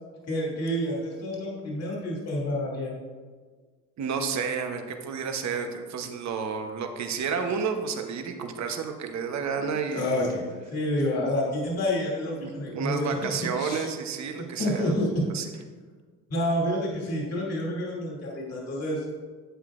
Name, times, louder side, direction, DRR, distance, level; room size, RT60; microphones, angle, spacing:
voice 1, 0.3-2.9 9.9-13.1 13.6-13.9 14.3-15.2 16.3-19.0, left 1 dB, 55° left, -3 dB, 2.6 m, -28 dB
voice 2, 4.0-10.1 12.4-15.0 15.3-15.5, right 6 dB, 65° right, 5 dB, 1.0 m, -31 dB
11.0 x 7.9 x 2.5 m, 1.5 s
cardioid pair, 90°, 30 cm